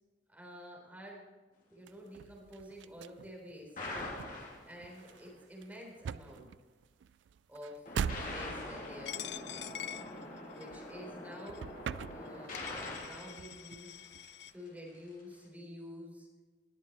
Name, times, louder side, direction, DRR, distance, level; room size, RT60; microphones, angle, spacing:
voice 1, 0.3-1.2 1.7-3.8 4.6-6.5 7.5-9.8 10.5-11.7 12.1-16.3, equal, 10° right, -2 dB, 3.7 m, -50 dB
sound 1, 1.9-11.2 11.4-12.7 13.0-14.5, right 7 dB, 70° right, 0.3 m, -43 dB
sound 2, 3.8-5.2 7.9-14.4, left 2 dB, 45° left, 3.0 m, -44 dB
Coin (dropping), 9.1-10.8 11.5-11.6 12.3-12.4 12.5-14.5, left 12 dB, 65° left, 0.4 m, -45 dB
20.0 x 7.4 x 4.2 m, 1.3 s
head